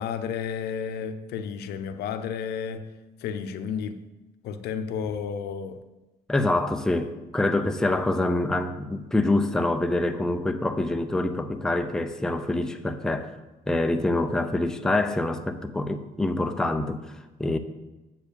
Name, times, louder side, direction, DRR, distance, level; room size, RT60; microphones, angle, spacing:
voice 1, 0.0-2.9 3.2-4.0 4.4-5.8, left 7 dB, 70° left, 0.7 m, -32 dB
voice 2, 6.3-13.3 13.7-17.6, left 2 dB, 5° left, 0.5 m, -26 dB
7.6 x 4.8 x 6.8 m
cardioid pair, 110°, 17 cm